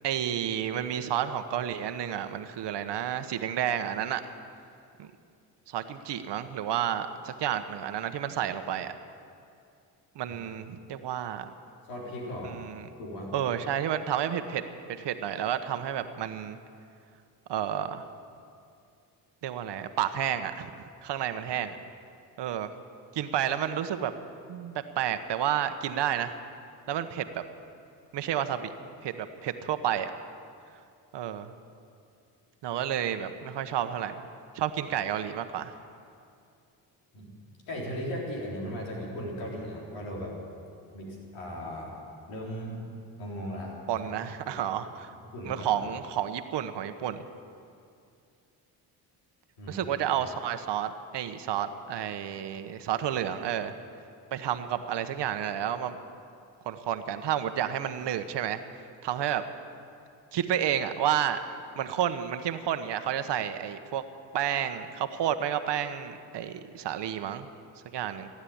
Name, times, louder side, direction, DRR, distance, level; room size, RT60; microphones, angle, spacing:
voice 1, 0.0-4.2 5.0-5.1 5.7-8.9 10.2-11.5 12.4-12.8 13.3-14.6 15.0-16.6 17.5-18.1 19.4-20.7 21.0-21.8 22.4-22.7 23.1-24.1 24.5-26.3 26.9-27.3 28.1-28.7 29.0-30.1 31.1-31.5 32.6-34.1 34.5-35.7 43.9-45.1 45.4-47.3 49.7-53.7 54.3-56.0 56.6-58.6 59.0-59.4 60.3-61.4 61.8-64.0 64.3-67.5 67.9-68.3, right 10 dB, 70° right, 10 dB, 1.1 m, -30 dB
voice 2, 11.9-12.6 13.0-13.3 37.1-37.4 37.7-40.3 40.9-41.9 42.3-42.8 43.2-43.8 44.5-44.6 45.1-45.8 49.6-49.9, equal, 90° left, -3 dB, 3.9 m, -37 dB
16.0 x 9.8 x 8.6 m, 2.4 s
supercardioid pair, 65°, 44 cm